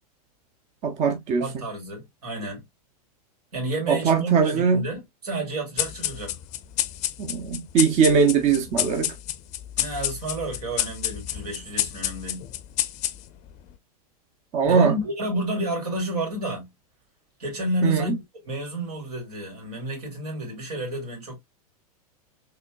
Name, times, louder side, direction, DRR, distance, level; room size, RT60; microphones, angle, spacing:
voice 1, 0.8-1.4 3.9-4.8 7.2-9.1 14.5-14.9 17.8-18.1, right 6 dB, 35° right, 0.7 m, -21 dB
voice 2, 1.4-2.6 3.5-6.4 9.8-12.4 14.6-16.7 17.4-21.4, right 1 dB, 80° right, 2.7 m, -30 dB
sound 1, 5.8-13.5, left 14 dB, 35° left, 0.5 m, -29 dB
4.2 x 3.2 x 2.4 m
hypercardioid pair, 110°, 20 cm